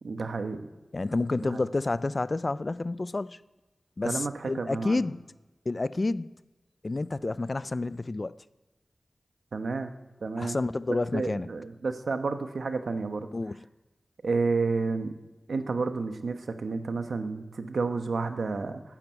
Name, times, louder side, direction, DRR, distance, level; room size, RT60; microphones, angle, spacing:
voice 1, 0.0-0.7 1.5-1.6 4.0-5.0 9.5-9.9 10.2-10.6 10.9-13.3 14.2-15.1 15.5-18.8, right 4 dB, 90° right, 1.0 m, -30 dB
voice 2, 0.9-3.4 4.0-5.3 5.7-6.4 6.8-8.4 10.4-11.5 13.3-13.6, left 2 dB, 40° left, 0.4 m, -29 dB
12.0 x 11.0 x 8.2 m
wide cardioid pair, 90°, 0 cm